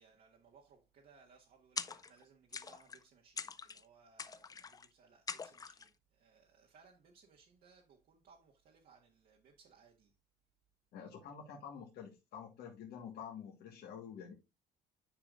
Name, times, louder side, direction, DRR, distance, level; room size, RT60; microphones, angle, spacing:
voice 1, 0.0-10.1, right 5 dB, 60° right, 1.6 m, -65 dB
sound 1, 1.8-2.2 2.5-3.0 3.4-3.8 4.2-4.9 5.3-5.9, left 5 dB, 20° left, 0.4 m, -44 dB
voice 2, 10.9-14.3, left 7 dB, 70° left, 1.5 m, -48 dB
9.9 x 4.9 x 2.5 m
cardioid pair, 110°, 17 cm